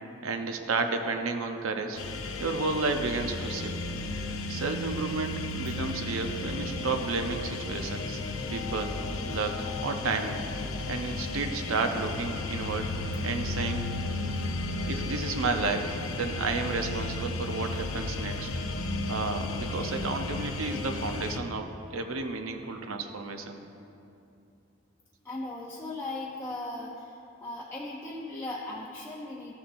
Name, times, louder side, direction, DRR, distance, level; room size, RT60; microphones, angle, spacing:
voice 1, 0.2-2.0 2.4-3.8 4.5-8.2 8.5-9.0 9.3-10.4 10.9-12.9 13.2-13.9 14.9-18.5 19.1-21.7 21.9-23.6, right 3 dB, 85° right, 5 dB, 0.7 m, -32 dB
sound 1, 2.0-21.4, left 2 dB, 75° left, 0.6 m, -34 dB
voice 2, 25.2-29.5, left 2 dB, 10° left, -5 dB, 0.5 m, -38 dB
14.0 x 7.1 x 2.6 m, 2.7 s
head